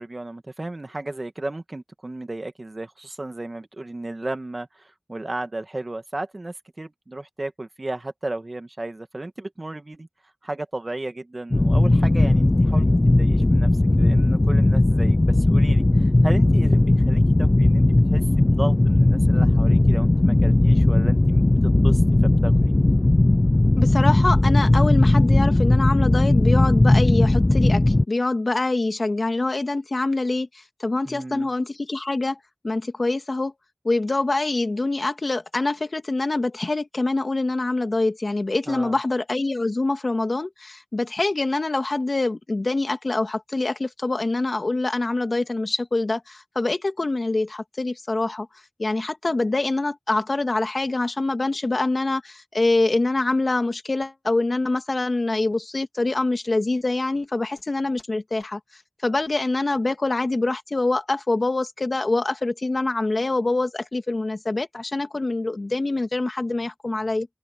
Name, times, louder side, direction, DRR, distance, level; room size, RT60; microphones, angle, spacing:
voice 1, 0.0-10.1 10.4-13.7 14.0-18.2 18.6-22.0 22.4-22.7 31.0-31.5 38.7-39.0, right 2 dB, 60° right, 1.6 m, -34 dB
sound 1, 11.5-28.0, left 2 dB, 50° left, 0.4 m, -17 dB
voice 2, 23.8-32.4 32.6-33.5 33.8-48.5 48.8-58.6 59.0-67.3, left 2 dB, 85° left, 1.8 m, -25 dB
wide cardioid pair, 45°, 0 cm